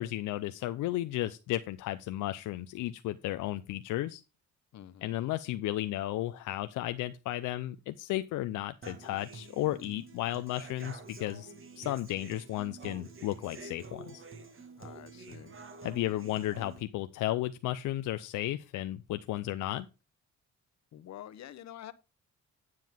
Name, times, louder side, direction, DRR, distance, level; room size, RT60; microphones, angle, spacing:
voice 1, 0.0-4.2 5.0-14.2 15.8-19.9, left 15 dB, 85° left, 0.6 m, -34 dB
voice 2, 4.7-5.2 14.8-15.5 20.9-21.9, left 11 dB, 65° left, 0.9 m, -47 dB
Human voice / Acoustic guitar, 8.8-16.8, right 4 dB, 45° right, 1.8 m, -48 dB
9.6 x 7.5 x 3.5 m
cardioid pair, 90°, 30 cm